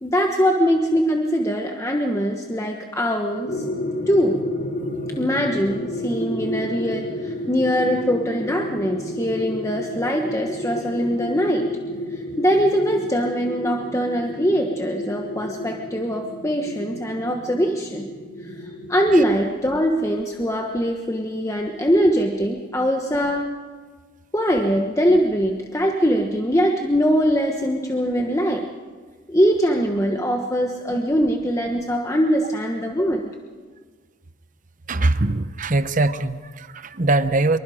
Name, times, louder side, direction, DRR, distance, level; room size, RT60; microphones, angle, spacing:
voice 1, 0.0-3.6 4.1-4.4 5.2-11.7 12.1-18.1 18.5-23.5 24.3-28.6 29.3-33.3, equal, 15° left, 2 dB, 1.1 m, -22 dB
sound 1, 3.5-19.1, left 1 dB, 50° left, 2.7 m, -31 dB
voice 2, 34.9-37.6, right 2 dB, 40° right, 12 dB, 0.8 m, -22 dB
25.0 x 23.5 x 5.0 m, 1.5 s
head